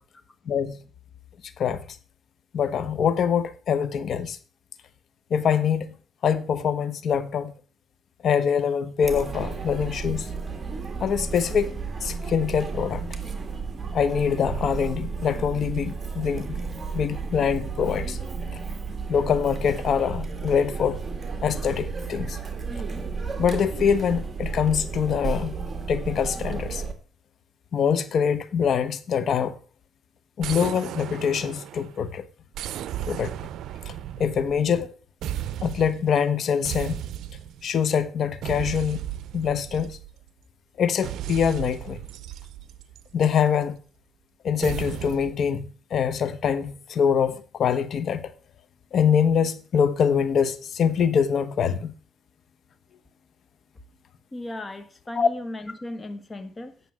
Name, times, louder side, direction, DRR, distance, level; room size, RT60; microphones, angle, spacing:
voice 1, 0.5-0.8 1.6-1.8 2.5-4.4 5.3-6.0 6.2-7.5 8.2-10.3 11.0-11.7 12.0-13.0 13.9-16.6 16.9-18.2 19.1-21.0 21.4-22.4 23.4-25.5 25.9-26.8 27.7-29.6 30.4-32.2 33.1-33.3 34.2-34.9 35.6-37.0 37.6-39.0 39.3-40.0 40.8-42.0 43.1-43.8 44.4-48.3 48.9-51.9 55.2-55.3, left 7 dB, 60° left, 1.1 m, -24 dB
Chatter, 9.0-26.9, right 5 dB, 30° right, 1.9 m, -33 dB
sound 1, 30.4-32.0 32.5-34.9 35.2-36.1 36.6-37.7 38.4-40.3 41.0-43.4 44.6-45.4, right 11 dB, 80° right, 0.5 m, -35 dB
voice 2, 54.3-56.7, left 1 dB, 25° left, 1.5 m, -36 dB
9.5 x 6.8 x 6.2 m
cardioid pair, 90°, 0 cm